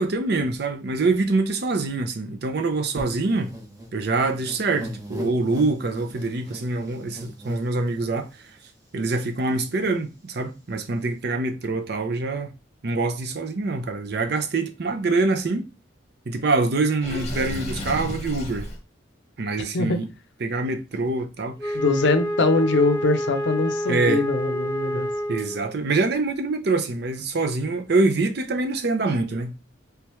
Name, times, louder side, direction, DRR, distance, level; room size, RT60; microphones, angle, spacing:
voice 1, 0.0-3.6 3.9-8.3 8.9-12.5 12.8-15.7 16.3-18.7 19.4-20.1 20.4-21.8 23.9-24.2 25.3-29.6, right 3 dB, 55° right, 0.5 m, -25 dB
sound 1, 2.9-8.5 9.0-9.1 9.3-9.9, equal, 20° right, 0.7 m, -40 dB
Water / Sink (filling or washing), 17.0-18.8, left 1 dB, 35° left, 0.9 m, -32 dB
Wind instrument woodwind instrument, 21.6-25.8, equal, 15° left, 0.4 m, -28 dB
voice 2, 21.7-25.1, left 3 dB, 65° left, 0.6 m, -22 dB
3.4 x 3.3 x 3.0 m
head